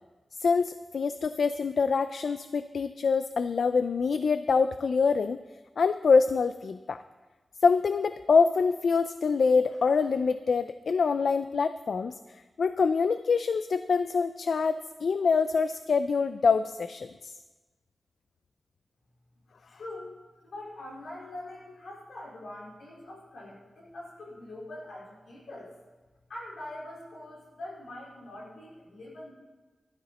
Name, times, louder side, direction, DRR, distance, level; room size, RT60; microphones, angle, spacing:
voice 1, 0.4-5.4 5.8-7.0 7.6-12.1 12.6-17.3, left 5 dB, 70° left, 11 dB, 0.4 m, -25 dB
voice 2, 19.7-20.1 20.4-25.7 26.3-29.3, left 1 dB, 90° left, -5 dB, 4.6 m, -43 dB
15.5 x 12.5 x 4.2 m, 1.2 s
wide cardioid pair, 150°, 0 cm